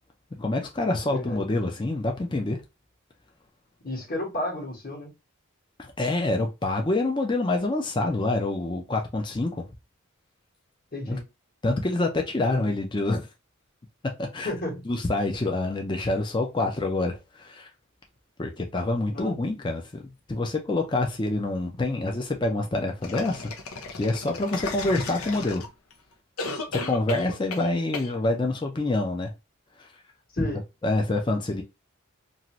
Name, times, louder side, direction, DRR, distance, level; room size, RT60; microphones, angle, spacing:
voice 1, 0.4-2.6 5.8-9.7 11.1-11.2 11.6-13.3 14.2-14.5 14.9-17.7 18.4-23.5 23.9-25.6 26.7-29.3 29.8-29.9 30.4-30.5 30.8-31.6, left 2 dB, 20° left, 0.4 m, -26 dB
voice 2, 1.1-1.5 3.8-5.1 10.9-11.2 12.5-12.7 14.4-14.8 19.1-19.4 30.3-30.6, left 1 dB, 45° left, 1.2 m, -32 dB
sound 1, 23.0-25.9 26.4-27.7 27.9-28.1, left 3 dB, 90° left, 0.7 m, -34 dB
2.6 x 2.5 x 2.9 m
head